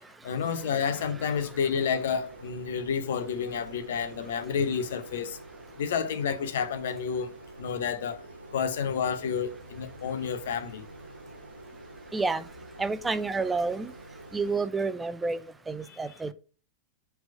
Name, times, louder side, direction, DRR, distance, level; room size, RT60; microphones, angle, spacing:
voice 1, 0.2-5.4 5.8-7.3 7.6-8.2 8.5-10.9 15.8-16.2, left 7 dB, 60° left, 0.7 m, -30 dB
sound 1, 0.9-14.6, right 2 dB, 85° right, 0.7 m, -47 dB
voice 2, 12.1-12.4 12.8-13.9 14.3-16.3, right 3 dB, 10° right, 0.5 m, -29 dB
6.0 x 3.4 x 5.4 m
figure-of-eight pair, 90°, 0 cm